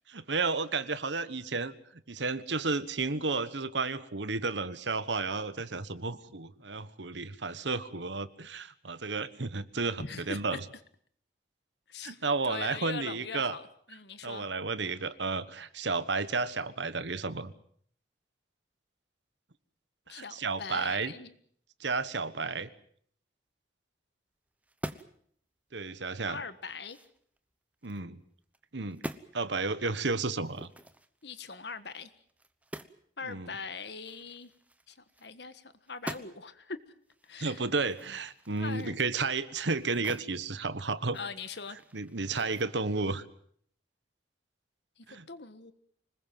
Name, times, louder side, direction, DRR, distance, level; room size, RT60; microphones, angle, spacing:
voice 1, 0.1-1.7 2.1-10.6 12.0-13.6 14.2-17.5 20.1-21.1 21.8-22.7 25.7-26.4 27.8-28.2 28.7-29.0 29.3-30.7 33.2-33.5 37.4-41.2 41.9-43.2 45.1-45.3, right 3 dB, 75° right, 14 dB, 1.3 m, -32 dB
voice 2, 10.0-10.6 11.9-12.2 12.4-14.4 20.1-21.3 26.2-27.0 31.2-32.1 33.2-34.5 34.9-36.8 37.2-37.6 38.6-39.0 41.1-41.8 45.0-45.7, left 5 dB, 65° left, 12 dB, 1.6 m, -41 dB
sound 1, 24.6-25.3 25.7-25.8 26.3-28.0 28.4-28.6 28.9-29.3 30.4-33.1 33.3-33.4 33.7-35.6 35.8-36.6 37.1-40.3 40.7-42.6, right 1 dB, 10° right, 1.0 m, -46 dB
25.5 x 20.5 x 7.6 m, 0.62 s
head